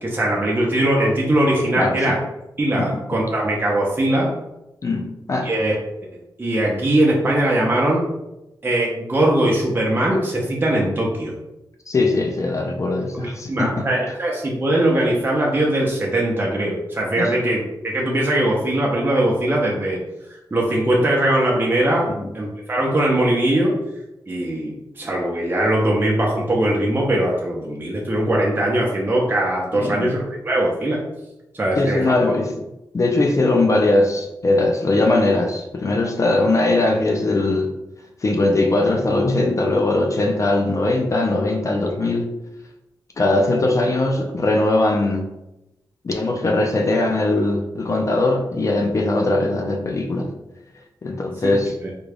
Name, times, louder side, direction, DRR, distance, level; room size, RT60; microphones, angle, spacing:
voice 1, 0.0-2.2 2.6-4.3 5.4-5.8 6.4-8.0 8.6-11.4 13.1-20.0 20.5-22.1 22.3-23.7 24.3-31.0 31.5-32.3 51.4-51.5, right 1 dB, 25° right, -3 dB, 0.7 m, -20 dB
voice 2, 1.8-2.2 2.8-2.9 4.8-5.5 11.9-14.2 17.2-17.4 22.1-22.3 29.7-30.1 31.8-32.6 32.9-37.7 38.2-42.3 43.2-45.3 46.0-50.3 51.0-51.7, left 2 dB, 40° left, 2 dB, 0.4 m, -20 dB
3.7 x 2.2 x 3.4 m, 0.92 s
wide cardioid pair, 100°, 8 cm